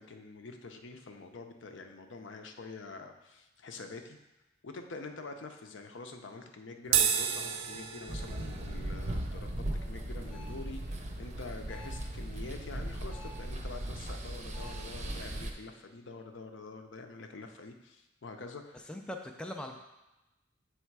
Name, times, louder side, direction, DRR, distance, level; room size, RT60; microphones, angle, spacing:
voice 1, 0.0-4.2 4.6-18.9, left 3 dB, 65° left, 5 dB, 0.6 m, -46 dB
sound 1, 6.8-13.4, right 8 dB, 80° right, 0.5 m, -35 dB
sound 2, 8.1-15.5, right 1 dB, 35° right, 0.6 m, -38 dB
sound 3, 10.3-10.6 11.7-12.1 13.1-13.5 14.5-14.9, left 1 dB, 90° left, 0.9 m, -51 dB
voice 2, 18.8-19.8, left 1 dB, 5° left, 3 dB, 0.3 m, -40 dB
7.4 x 3.3 x 4.6 m, 0.99 s
head